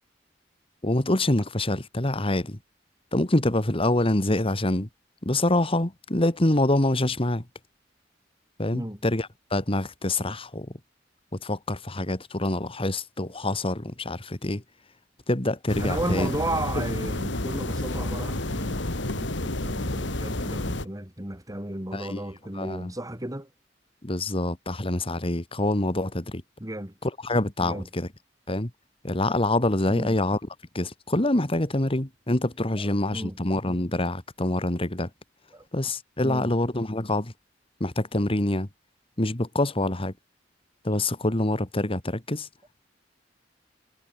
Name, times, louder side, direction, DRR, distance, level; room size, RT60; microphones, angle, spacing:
voice 1, 0.8-2.6 3.1-4.9 5.2-7.4 8.6-10.7 11.4-14.6 15.3-16.3 16.8-16.9 21.9-22.2 22.5-22.9 24.0-26.4 27.2-28.1 28.5-28.7 29.0-30.4 30.7-35.1 35.7-37.3 37.8-38.7 39.2-40.1 40.8-42.5, left 1 dB, 30° left, 2.0 m, -26 dB
sound 1, 15.7-20.8, left 1 dB, 80° left, 2.7 m, -30 dB
voice 2, 15.8-23.5 26.6-26.9 27.6-27.9 29.9-30.2 32.7-33.4 35.5-35.7 36.2-36.5, right 1 dB, 20° right, 3.8 m, -34 dB
head